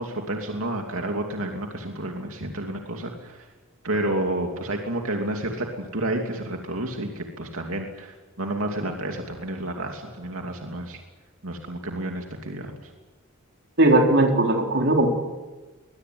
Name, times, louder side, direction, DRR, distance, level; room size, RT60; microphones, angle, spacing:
voice 1, 0.0-3.5 3.8-11.0 11.4-12.9, right 1 dB, 80° right, 2 dB, 2.8 m, -30 dB
voice 2, 13.8-15.1, right 1 dB, 55° right, 2 dB, 3.9 m, -18 dB
22.5 x 21.5 x 9.5 m, 1.2 s
head